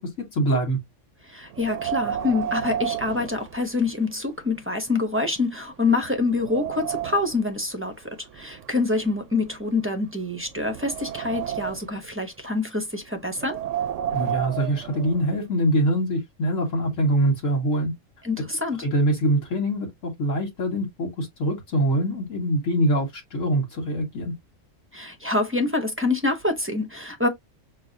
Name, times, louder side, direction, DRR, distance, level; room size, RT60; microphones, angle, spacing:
voice 1, 0.3-0.8 14.1-17.9 18.8-24.3, right 1 dB, 75° left, 1.8 m, -24 dB
voice 2, 1.2-13.6 18.2-18.8 24.9-27.3, left 3 dB, 15° right, 0.6 m, -26 dB
Wind, 1.5-4.1 4.5-4.6 5.2-5.3 5.8-7.4 8.3-9.8 10.4-12.0 13.3-15.4, right 10 dB, 75° right, 0.9 m, -32 dB
6.6 x 2.2 x 2.6 m
omnidirectional pair, 1.4 m